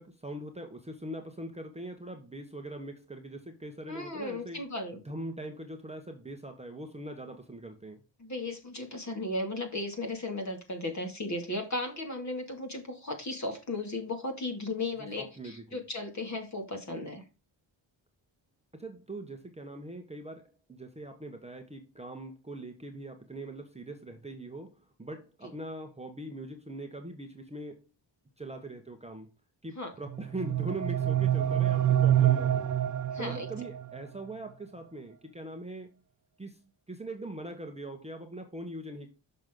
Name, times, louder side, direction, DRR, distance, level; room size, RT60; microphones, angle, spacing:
voice 1, 0.0-4.6 5.0-8.0 15.0-15.8 18.7-27.9 28.4-29.3 29.6-32.7 33.2-36.0 36.4-39.1, right 1 dB, 15° right, 1.0 m, -42 dB
voice 2, 3.9-5.0 8.2-17.2 29.8-29.9 33.1-33.5, left 2 dB, 40° left, 2.4 m, -35 dB
sound 1, 30.1-34.0, right 11 dB, 45° right, 0.5 m, -27 dB
6.6 x 6.1 x 3.7 m
wide cardioid pair, 160°, 45 cm